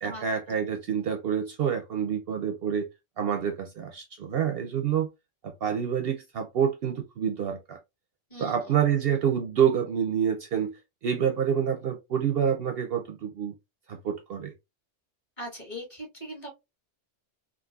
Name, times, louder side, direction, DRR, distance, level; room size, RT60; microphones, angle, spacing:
voice 1, 0.0-2.9 3.2-5.1 5.4-7.8 8.4-10.8 11.0-13.5 13.9-14.5, right 8 dB, 65° right, 0.7 m, -27 dB
voice 2, 15.4-16.5, equal, 30° left, 1.6 m, -39 dB
3.8 x 2.4 x 2.3 m
omnidirectional pair, 1.2 m